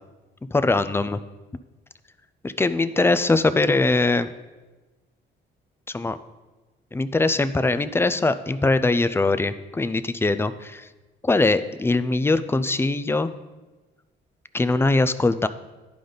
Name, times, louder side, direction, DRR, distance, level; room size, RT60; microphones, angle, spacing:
voice 1, 0.5-1.2 2.4-4.3 5.9-6.2 6.9-10.9 11.2-13.3 14.5-15.5, left 3 dB, 10° left, 12 dB, 0.4 m, -21 dB
11.0 x 5.0 x 3.9 m, 1.2 s
cardioid pair, 90°, 20 cm